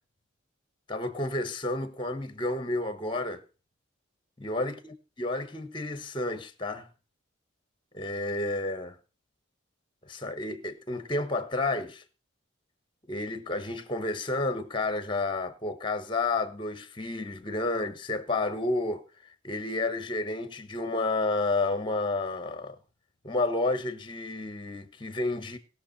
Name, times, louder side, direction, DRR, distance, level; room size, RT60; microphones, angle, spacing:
voice 1, 0.9-3.4 4.4-4.9 5.2-6.9 7.9-9.0 10.1-12.0 13.1-19.0 19.4-22.8 23.2-25.6, left 2 dB, 25° left, 1.2 m, -31 dB
19.5 x 6.6 x 4.1 m
head